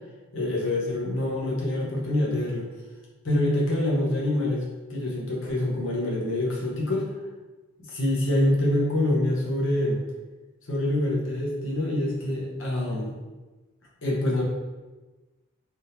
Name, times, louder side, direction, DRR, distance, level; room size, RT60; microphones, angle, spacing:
voice 1, 0.3-2.7 3.2-4.6 4.9-7.0 7.9-10.0 10.7-13.1 14.0-14.4, left 1 dB, 60° left, -3 dB, 0.8 m, -25 dB
3.4 x 2.6 x 2.8 m, 1.2 s
head